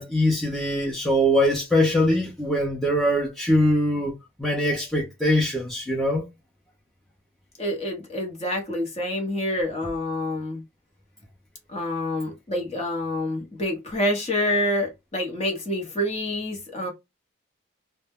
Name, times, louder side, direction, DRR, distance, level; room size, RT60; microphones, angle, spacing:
voice 1, 0.0-4.1 4.4-6.2, equal, ahead, 0.4 m, -22 dB
voice 2, 7.6-10.6 11.7-16.9, left 1 dB, 30° left, 0.8 m, -27 dB
2.1 x 2.1 x 3.4 m
head